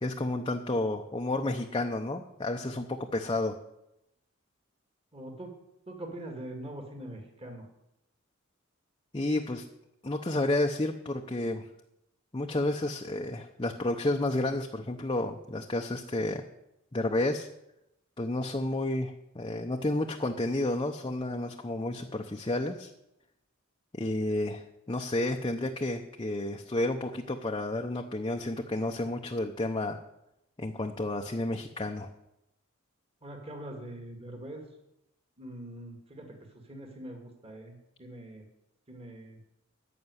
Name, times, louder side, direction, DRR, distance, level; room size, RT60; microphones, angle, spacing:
voice 1, 0.0-3.6 9.1-9.6 10.0-11.7 12.3-16.4 16.9-17.5 18.2-22.9 23.9-30.0 30.6-32.1, left 2 dB, 25° left, 2 dB, 0.8 m, -31 dB
voice 2, 5.1-5.5 5.9-7.7 33.2-34.6 35.4-36.4 36.7-38.4 38.9-39.4, right 1 dB, 30° right, 2 dB, 2.2 m, -43 dB
14.5 x 6.0 x 9.7 m, 0.86 s
head